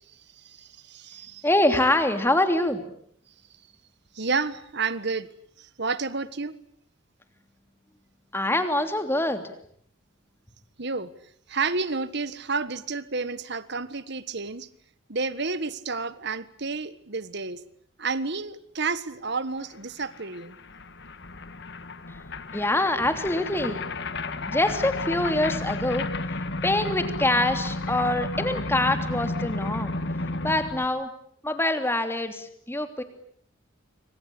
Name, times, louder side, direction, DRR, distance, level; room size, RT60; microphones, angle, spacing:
voice 1, 0.1-1.4 4.1-5.3 5.6-6.6 10.8-11.1 11.5-14.7 15.1-17.6 18.0-20.6, right 4 dB, 55° right, 15 dB, 1.5 m, -30 dB
voice 2, 1.4-2.8 8.3-9.4 22.1-22.2 22.5-23.8 24.5-26.1 26.6-29.9 30.4-31.1 31.4-33.0, left 1 dB, 10° left, 7 dB, 3.1 m, -24 dB
sound 1, 19.7-19.8 20.0-30.9, left 2 dB, 55° left, 1.8 m, -32 dB
26.5 x 25.5 x 8.6 m, 0.64 s
head